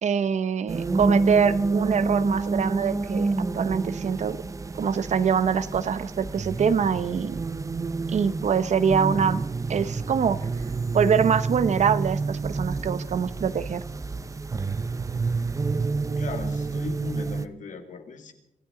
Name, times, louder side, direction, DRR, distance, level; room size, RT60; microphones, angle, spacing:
voice 1, 0.0-4.4 4.8-7.4 8.1-9.4 9.7-10.5 10.9-13.8, right 7 dB, 65° right, 14 dB, 0.8 m, -24 dB
sound 1, 0.7-17.5, right 3 dB, 25° right, 0.6 m, -28 dB
voice 2, 16.2-18.3, left 4 dB, 75° left, 6 dB, 2.1 m, -37 dB
24.5 x 14.5 x 3.8 m, 0.81 s
wide cardioid pair, 150°, 13 cm